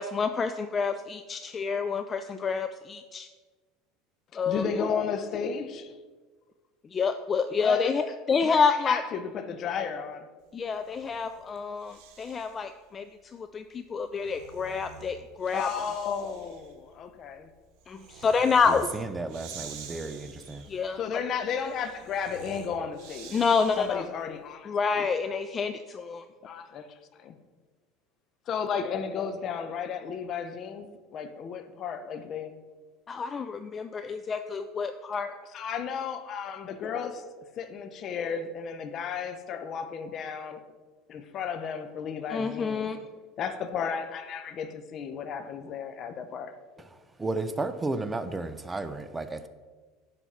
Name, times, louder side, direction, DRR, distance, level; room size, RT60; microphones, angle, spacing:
voice 1, 0.0-3.3 4.3-4.7 6.9-9.0 10.5-13.0 13.3-15.9 17.9-18.9 20.7-21.0 23.3-24.0 24.6-26.2 33.1-35.3 42.3-43.0, left 5 dB, 30° left, 0.4 m, -28 dB
voice 2, 4.5-6.0 7.6-7.9 8.5-8.6 8.8-10.3 15.5-17.5 21.0-23.3 23.8-24.7 25.0-25.1 26.4-26.9 27.2-27.4 28.5-32.6 35.5-37.3 37.6-40.6 41.1-42.9 43.4-46.5, left 6 dB, 45° left, 0.8 m, -33 dB
Breathing, 10.7-12.7 13.9-24.2, right 6 dB, 60° right, 1.2 m, -48 dB
voice 3, 18.7-20.7 47.2-49.5, right 2 dB, 20° right, 0.6 m, -33 dB
10.0 x 4.1 x 5.8 m
hypercardioid pair, 80°, 0 cm